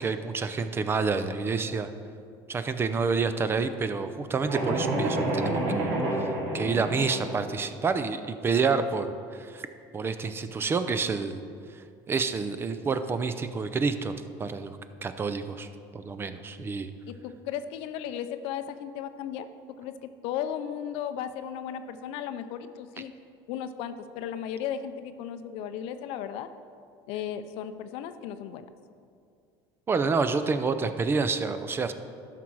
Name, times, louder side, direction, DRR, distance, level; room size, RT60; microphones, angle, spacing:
voice 1, 0.0-1.9 2.5-5.9 6.2-6.3 6.5-9.7 9.9-11.4 11.7-14.8 15.0-16.9 29.9-31.9, right 4 dB, 25° right, 10 dB, 0.5 m, -28 dB
sound 1, 4.5-7.4, right 1 dB, 80° right, 2.5 m, -28 dB
voice 2, 17.1-19.5 19.8-19.9 20.2-23.1 23.5-26.5 27.1-28.7, left 9 dB, 70° left, 10 dB, 0.6 m, -35 dB
12.5 x 6.0 x 4.7 m, 2.3 s
cardioid pair, 135°, 10 cm